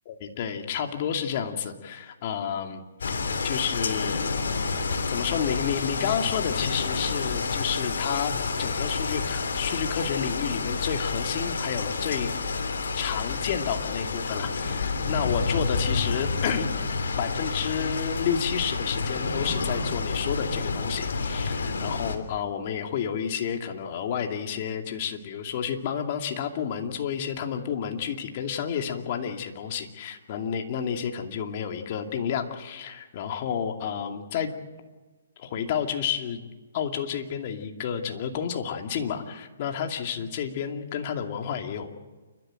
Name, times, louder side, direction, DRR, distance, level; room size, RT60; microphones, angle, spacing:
voice 1, 0.1-2.8 3.4-4.7 5.1-12.3 12.9-16.7 17.2-34.5 35.4-36.4 36.7-41.9, left 8 dB, 40° left, 4 dB, 2.4 m, -30 dB
sound 1, 3.0-22.2, left 4 dB, 75° left, 3.2 m, -29 dB
29.0 x 13.0 x 9.0 m, 1.3 s
hypercardioid pair, 155°, 0 cm